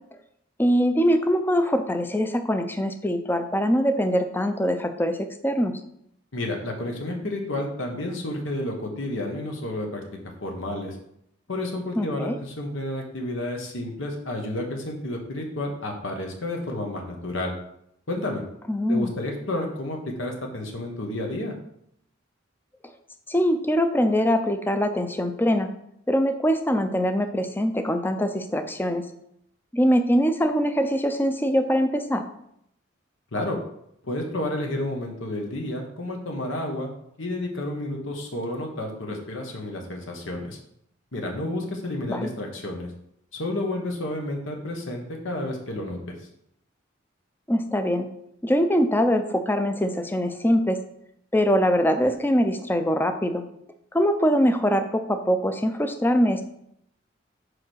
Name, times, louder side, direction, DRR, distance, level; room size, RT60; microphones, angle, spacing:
voice 1, 0.6-5.8 12.0-12.4 18.7-19.1 23.3-25.7 26.1-29.1 29.7-32.2 42.1-42.3 47.5-48.1 48.4-50.8 51.3-53.4 53.9-56.4, equal, 10° left, 8 dB, 0.5 m, -23 dB
voice 2, 6.3-10.0 10.4-11.0 11.5-17.5 18.1-18.4 18.9-21.5 33.3-33.6 34.0-36.9 37.2-40.6 41.1-42.9 43.3-46.1, left 1 dB, 80° left, 1 dB, 1.3 m, -31 dB
4.9 x 4.8 x 6.2 m, 0.74 s
head